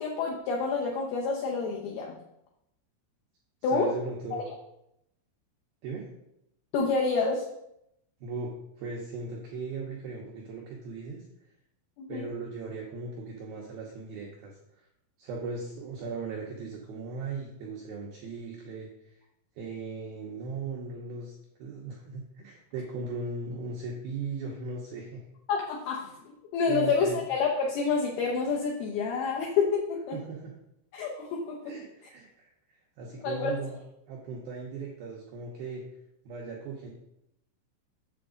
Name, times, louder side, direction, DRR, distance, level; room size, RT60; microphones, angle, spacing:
voice 1, 0.0-2.2 3.6-3.9 6.7-7.4 12.0-12.3 25.5-26.1 26.5-30.2 30.9-31.7 33.2-33.6, left 5 dB, 85° left, -1 dB, 2.2 m, -28 dB
voice 2, 3.7-4.4 5.8-6.1 8.2-8.5 8.8-11.2 12.1-14.9 15.2-19.1 19.6-21.3 21.6-25.2 26.0-26.1 26.7-27.2 30.1-30.5 31.6-33.8 34.1-35.8 36.3-36.9, right 4 dB, 85° right, -2 dB, 2.1 m, -38 dB
8.2 x 6.9 x 3.8 m, 0.81 s
omnidirectional pair, 5.7 m